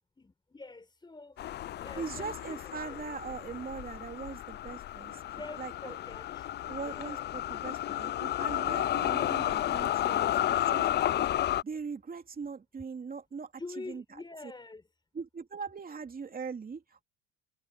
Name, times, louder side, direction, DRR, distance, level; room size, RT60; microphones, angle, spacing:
voice 1, 0.2-1.4 1.8-3.0 5.2-7.3 9.1-9.5 13.6-14.8, left 3 dB, 15° left, 4.3 m, -46 dB
sound 1, 1.4-11.6, left 12 dB, 35° left, 0.4 m, -32 dB
voice 2, 2.0-5.9 6.7-11.3 11.6-13.5 13.9-14.0 15.1-17.0, right 5 dB, 25° right, 3.0 m, -41 dB
supercardioid pair, 105°, 33 cm